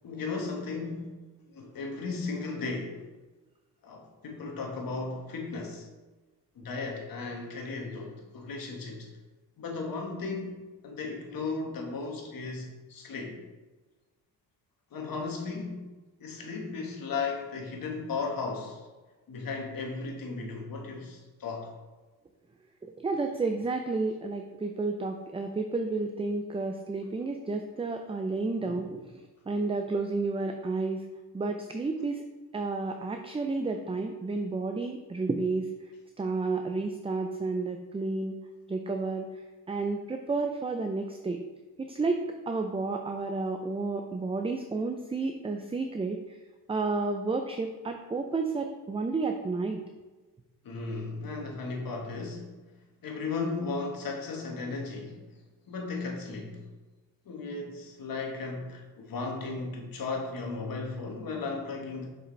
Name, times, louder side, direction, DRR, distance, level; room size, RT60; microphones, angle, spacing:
voice 1, 0.0-1.2 1.5-3.0 3.8-5.9 6.6-9.1 9.6-13.4 14.9-15.8 16.2-18.8 19.3-21.7 50.6-52.5 53.0-55.2 55.7-56.6 57.2-62.1, left 4 dB, 60° left, 1 dB, 1.5 m, -35 dB
voice 2, 22.8-29.0 29.5-31.0 31.3-32.2 32.5-35.7 36.2-38.4 38.7-39.3 39.7-41.4 41.8-46.2 46.7-49.8, right 3 dB, 15° right, 5 dB, 0.4 m, -31 dB
6.4 x 5.4 x 3.2 m, 1.2 s
cardioid pair, 75°, 38 cm